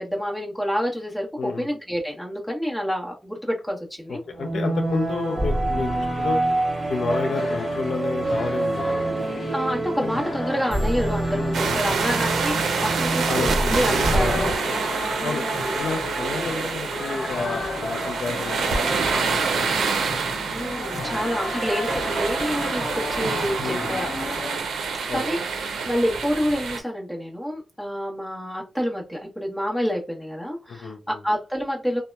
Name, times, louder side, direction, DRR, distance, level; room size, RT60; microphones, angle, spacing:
voice 1, 0.0-4.2 9.5-14.6 15.2-15.9 20.5-24.1 25.1-32.0, equal, 5° left, -1 dB, 1.0 m, -28 dB
voice 2, 1.4-1.7 4.1-6.4 6.9-9.1 10.0-10.1 11.3-12.1 13.3-14.7 15.2-15.4 15.8-19.8 21.0-21.2 23.6-24.1 25.1-25.3 30.7-31.0, left 4 dB, 80° left, 4 dB, 0.5 m, -31 dB
sound 1, 4.3-14.6, right 2 dB, 25° right, 0.7 m, -27 dB
sound 2, 7.1-24.6, left 2 dB, 40° left, 0.6 m, -33 dB
sound 3, 11.5-26.8, right 5 dB, 85° right, 0.5 m, -27 dB
2.8 x 2.1 x 2.2 m, 0.31 s
cardioid pair, 90°, 0 cm